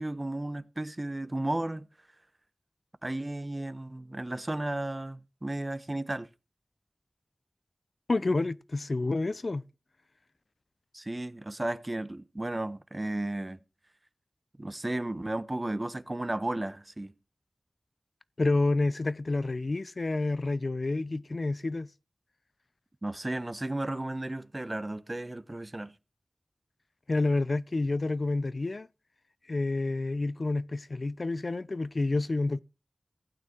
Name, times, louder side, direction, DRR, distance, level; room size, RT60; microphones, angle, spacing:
voice 1, 0.0-1.9 3.0-6.3 10.9-13.6 14.6-17.1 23.0-25.9, right 1 dB, 35° right, 1.0 m, -34 dB
voice 2, 8.1-9.6 18.4-21.9 27.1-28.9 29.5-32.6, left 2 dB, 60° left, 0.6 m, -29 dB
15.5 x 9.1 x 4.5 m
wide cardioid pair, 45°, 0 cm